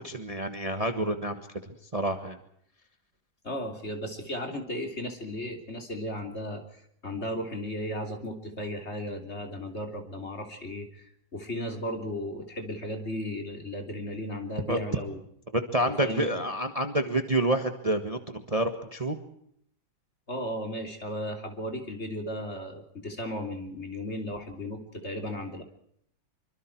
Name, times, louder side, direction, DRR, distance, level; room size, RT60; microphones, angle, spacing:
voice 1, 0.0-2.4 14.7-15.0 15.5-19.2, right 1 dB, 20° right, 7 dB, 1.5 m, -28 dB
voice 2, 3.4-15.2 15.8-16.3 20.3-25.6, equal, 35° left, 4 dB, 3.5 m, -35 dB
26.0 x 24.5 x 4.7 m, 0.71 s
omnidirectional pair, 1.9 m